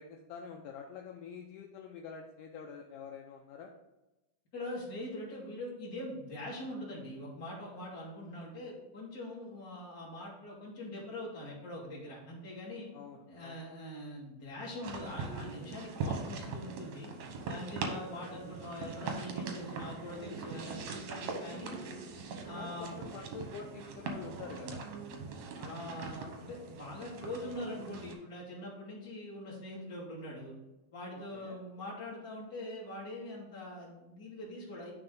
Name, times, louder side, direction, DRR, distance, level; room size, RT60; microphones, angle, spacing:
voice 1, 0.0-3.7 12.9-13.6 22.6-24.8 31.1-31.6, left 6 dB, 80° left, 2 dB, 1.9 m, -47 dB
voice 2, 4.5-12.9 13.3-17.1 17.4-21.8 22.4-23.0 25.3-30.5 30.9-34.9, left 1 dB, 30° left, -5 dB, 2.2 m, -43 dB
sound 1, 14.8-28.1, right 4 dB, 70° right, 1.8 m, -41 dB
11.0 x 3.9 x 3.8 m, 1.0 s
omnidirectional pair, 4.3 m